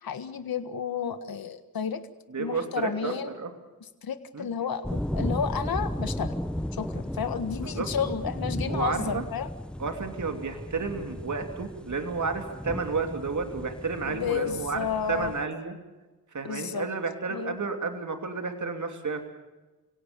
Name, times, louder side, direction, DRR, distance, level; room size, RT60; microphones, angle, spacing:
voice 1, 0.0-2.0 2.4-3.3 3.8-6.3 6.7-9.5 14.1-15.3 16.4-16.9 17.3-17.6, left 7 dB, 80° left, 10 dB, 1.6 m, -31 dB
voice 2, 2.3-3.5 4.3-4.5 7.6-7.9 8.7-9.2 9.8-15.7 16.3-19.2, right 4 dB, 55° right, 6 dB, 2.9 m, -31 dB
sound 1, 4.8-15.4, equal, 5° left, 0.8 m, -35 dB
30.0 x 17.5 x 6.9 m, 1.2 s
cardioid pair, 75°, 35 cm